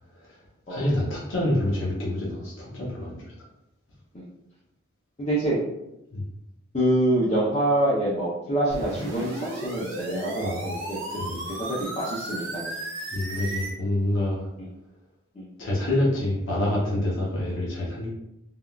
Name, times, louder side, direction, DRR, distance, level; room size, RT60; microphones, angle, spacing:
voice 1, 0.7-3.3 6.1-6.2 10.4-10.6 11.2-11.4 13.1-14.5 15.6-18.1, left 1 dB, 60° left, -6 dB, 0.7 m, -27 dB
voice 2, 5.2-5.6 6.7-11.2 11.5-12.7 15.4-15.5, right 1 dB, 30° left, -7 dB, 0.5 m, -26 dB
sound 1, 8.7-13.7, right 1 dB, 60° right, 0.7 m, -34 dB
3.5 x 2.2 x 2.3 m, 0.85 s
head